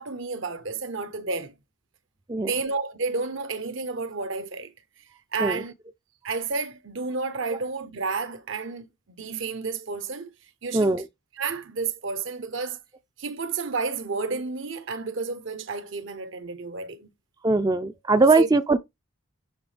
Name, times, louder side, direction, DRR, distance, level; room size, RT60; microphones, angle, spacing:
voice 1, 0.0-1.5 2.4-4.7 5.3-5.7 6.2-8.9 9.2-10.3 10.6-10.9 11.4-12.8 13.2-17.1 18.4-18.5, right 4 dB, 60° right, 0.8 m, -31 dB
voice 2, 10.7-11.0 17.4-18.8, right 3 dB, 20° right, 0.4 m, -20 dB
10.5 x 3.7 x 3.3 m
head